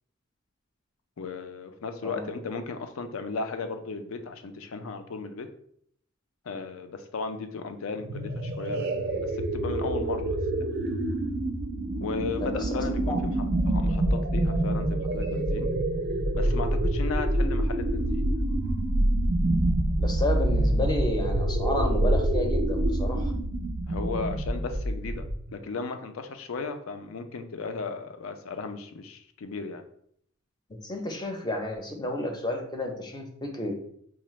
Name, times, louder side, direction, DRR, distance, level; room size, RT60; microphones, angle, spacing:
voice 1, 1.2-5.5 6.4-10.7 12.0-13.1 13.7-15.7 16.3-18.3 23.9-25.2 25.5-29.8, left 4 dB, 75° left, 8 dB, 0.4 m, -35 dB
sound 1, 8.0-25.5, right 1 dB, 50° right, 0.4 m, -26 dB
voice 2, 12.4-12.8 13.1-13.2 20.0-23.3 30.7-33.7, left 1 dB, 20° left, 2 dB, 0.5 m, -31 dB
4.9 x 2.0 x 3.1 m, 0.67 s
head